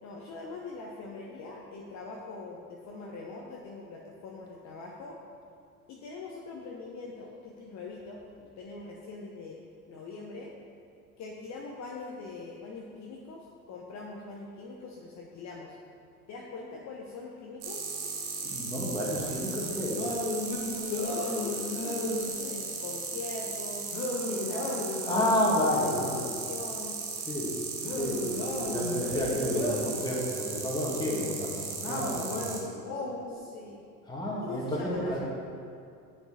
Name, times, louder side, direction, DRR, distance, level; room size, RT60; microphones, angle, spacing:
voice 1, 0.0-5.2 5.9-9.6 9.9-10.5 11.2-15.7 16.3-17.9 20.9-23.9 24.3-27.0 33.3-33.8 34.4-35.2, left 3 dB, 40° left, -2 dB, 1.0 m, -42 dB
sound 1, 17.6-32.6, right 5 dB, 75° right, 1.6 m, -37 dB
voice 2, 18.4-20.0 25.1-26.4 27.3-27.5 27.9-31.5 31.9-32.4 34.1-35.2, left 1 dB, 10° left, -4 dB, 2.2 m, -30 dB
sound 2, 19.9-22.3 23.9-25.6 27.8-30.0 31.8-33.4, left 2 dB, 65° left, 1.7 m, -34 dB
8.1 x 6.9 x 4.3 m, 2.4 s
hypercardioid pair, 75°, 44 cm